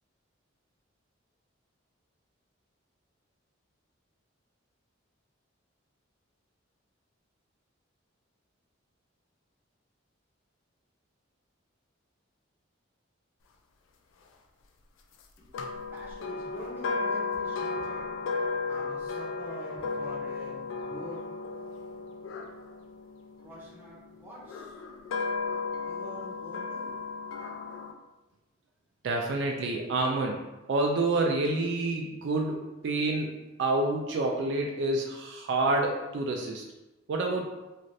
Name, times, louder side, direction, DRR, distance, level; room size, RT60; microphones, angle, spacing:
sound 1, 15.5-23.7 24.4-27.9, left 4 dB, 75° left, 0.3 m, -34 dB
voice 1, 15.6-18.2 18.7-21.2 23.4-24.8 25.8-27.1, equal, 10° right, -6 dB, 0.7 m, -46 dB
voice 2, 29.0-30.4 30.7-33.3 33.6-36.6 37.1-37.4, right 2 dB, 60° right, 1 dB, 0.3 m, -28 dB
3.1 x 2.4 x 2.6 m, 1.0 s
head